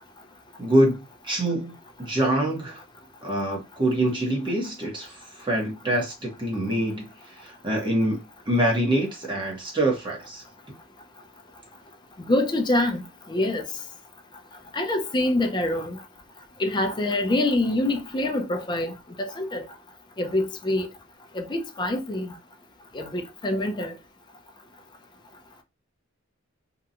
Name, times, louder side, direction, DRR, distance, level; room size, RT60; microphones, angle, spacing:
voice 1, 0.6-2.8 3.2-8.2 8.5-10.4, right 1 dB, 25° right, 0.9 m, -25 dB
voice 2, 12.3-13.0 13.3-13.6 14.7-16.0 16.6-18.9 19.2-19.6 20.2-20.9 21.3-22.3 22.9-23.9, left 1 dB, 20° left, 0.4 m, -25 dB
2.8 x 2.2 x 2.4 m
head